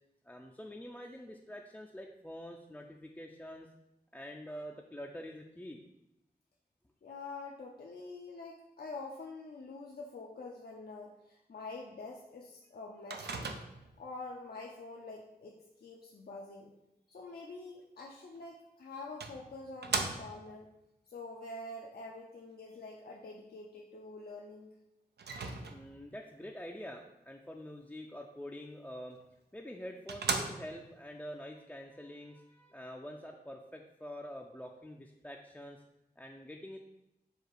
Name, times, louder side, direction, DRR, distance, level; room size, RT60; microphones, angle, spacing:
voice 1, 0.2-3.7 4.1-5.8 20.3-20.6 25.7-29.2 29.5-35.8 36.2-36.8, equal, 10° left, 0 dB, 0.4 m, -46 dB
voice 2, 7.0-13.5 14.0-16.7 17.1-20.7 21.1-24.7, left 3 dB, 70° left, -2 dB, 0.5 m, -46 dB
Microwave oven, 13.1-14.0 18.4-18.5 19.2-20.6 25.2-26.1 29.2-29.3 29.7-29.8 30.1-31.0, right 4 dB, 85° right, 0.4 m, -37 dB
4.8 x 2.4 x 4.6 m, 0.89 s
wide cardioid pair, 55°, 17 cm